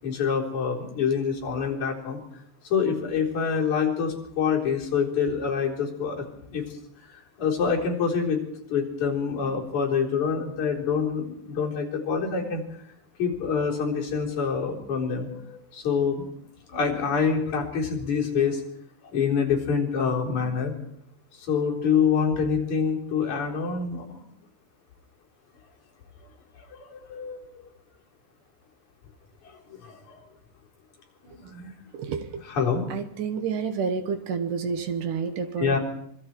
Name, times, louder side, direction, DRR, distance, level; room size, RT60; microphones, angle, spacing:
voice 1, 0.0-2.2 2.7-6.3 6.5-6.7 7.1-8.4 8.7-12.6 13.2-16.3 16.7-18.6 19.1-20.7 21.3-24.2 26.7-27.7 29.4-30.2 31.2-31.7 32.5-32.9 35.6-35.8, left 6 dB, 45° left, -2 dB, 5.3 m, -26 dB
voice 2, 31.9-32.4 32.9-35.8, right 6 dB, 65° right, 8 dB, 2.2 m, -29 dB
25.5 x 22.0 x 4.6 m, 0.69 s
omnidirectional pair, 5.0 m